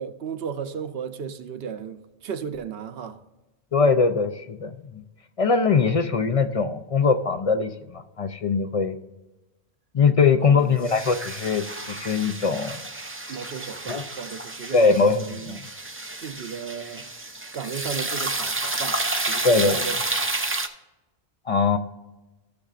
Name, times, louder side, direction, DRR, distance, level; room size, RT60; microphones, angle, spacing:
voice 1, 0.0-3.2 10.4-10.8 13.3-15.6 16.2-17.1 17.5-19.0 19.3-19.9, right 7 dB, 70° right, 0.9 m, -35 dB
voice 2, 3.7-4.7 5.4-9.0 9.9-12.8 13.9-14.0 14.7-15.6 19.4-19.8 21.5-21.8, left 4 dB, 45° left, 0.5 m, -21 dB
sound 1, 10.8-20.7, right 2 dB, 15° right, 0.4 m, -30 dB
15.5 x 6.6 x 2.5 m
omnidirectional pair, 1.1 m